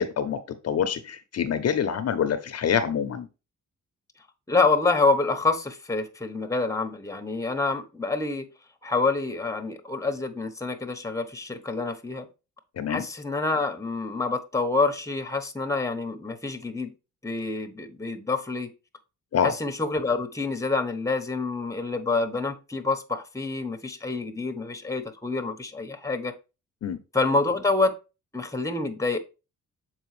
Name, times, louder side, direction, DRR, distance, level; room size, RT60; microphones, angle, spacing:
voice 1, 0.0-3.3 12.8-13.1 19.3-19.5 26.8-27.0, left 7 dB, 50° left, 0.6 m, -26 dB
voice 2, 4.5-8.5 8.8-12.3 12.9-16.9 17.2-18.7 19.4-26.3 27.1-27.9 28.3-29.2, left 3 dB, 10° left, 0.9 m, -27 dB
6.8 x 4.5 x 3.1 m
cardioid pair, 105°, 31 cm